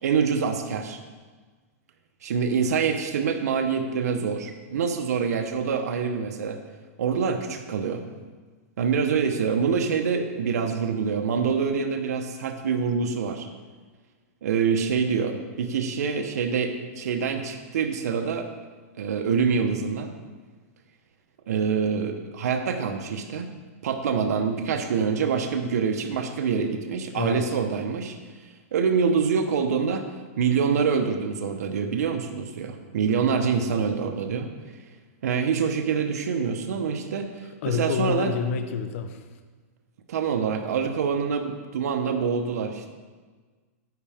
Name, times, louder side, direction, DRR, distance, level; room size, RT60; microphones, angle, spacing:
voice 1, 0.0-1.0 2.2-6.6 7.0-8.0 8.8-13.5 14.4-18.5 19.0-20.1 21.5-23.6 23.8-28.2 28.7-34.5 35.2-38.3 40.1-42.9, right 6 dB, 80° right, 5 dB, 1.0 m, -25 dB
voice 2, 37.6-39.3, left 6 dB, 55° left, 7 dB, 0.7 m, -28 dB
10.5 x 8.6 x 3.6 m, 1.4 s
supercardioid pair, 155°, 8 cm